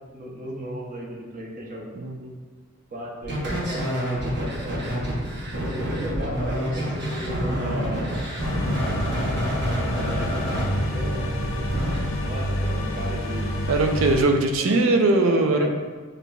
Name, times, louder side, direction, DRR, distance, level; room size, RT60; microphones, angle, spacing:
voice 1, 0.1-1.9 2.9-4.9 5.7-8.2 9.9-11.3 12.2-13.6 14.6-14.8 15.2-15.7, equal, 40° right, -2 dB, 0.8 m, -35 dB
voice 2, 2.0-2.3 13.7-15.7, right 2 dB, 75° right, 4 dB, 0.5 m, -20 dB
sound 1, 3.2-12.0, equal, 55° right, 1.0 m, -28 dB
sound 2, 8.4-14.2, equal, 80° left, 0.6 m, -28 dB
6.8 x 2.6 x 2.3 m, 1.4 s
head